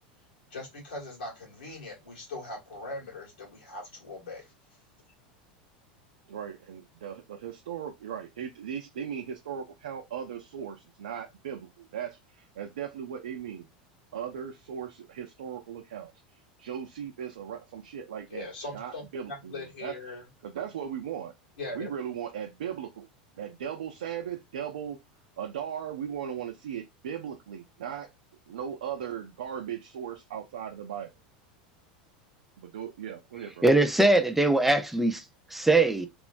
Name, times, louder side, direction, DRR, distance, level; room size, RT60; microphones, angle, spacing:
voice 1, 0.5-4.5 18.3-20.2 21.6-21.9, left 2 dB, 85° left, 1.7 m, -40 dB
voice 2, 6.3-13.7 14.1-21.3 21.7-23.1 23.4-25.0 25.4-28.1 28.5-31.1 32.6-33.7, right 8 dB, 85° right, 0.4 m, -38 dB
voice 3, 33.6-35.2 35.5-36.1, right 2 dB, 5° right, 0.4 m, -21 dB
3.0 x 2.1 x 2.5 m
hypercardioid pair, 100°, 5 cm